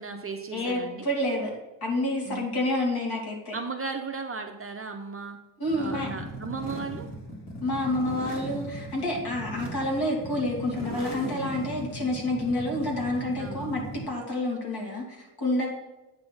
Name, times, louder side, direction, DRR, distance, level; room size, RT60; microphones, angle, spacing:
voice 1, 0.0-1.1 2.2-2.6 3.5-5.4 5.8-7.1 13.4-13.7, right 4 dB, 30° right, 4 dB, 0.5 m, -36 dB
voice 2, 0.5-1.5 1.8-3.6 5.6-6.1 7.6-15.7, left 1 dB, 55° left, -1 dB, 2.5 m, -28 dB
sound 1, 5.6-14.2, right 1 dB, 40° left, 1.7 m, -38 dB
8.8 x 4.1 x 6.2 m, 1.0 s
wide cardioid pair, 170°, 45 cm